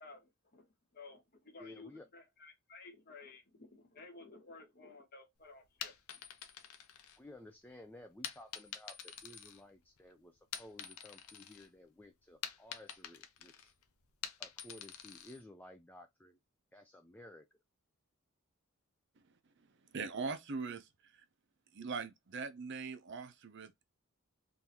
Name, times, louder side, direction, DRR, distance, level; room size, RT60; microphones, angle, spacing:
voice 1, 0.0-5.9, left 3 dB, 45° left, 1.1 m, -55 dB
voice 2, 1.6-2.1 7.2-13.7 14.4-16.4 16.7-17.5, left 1 dB, 10° left, 0.4 m, -55 dB
sound 1, 5.6-7.6 8.2-10.0 10.4-11.7 12.0-15.4, left 8 dB, 85° left, 0.7 m, -47 dB
voice 3, 19.9-20.9 21.7-23.8, right 4 dB, 55° right, 0.6 m, -41 dB
3.8 x 2.7 x 2.9 m
head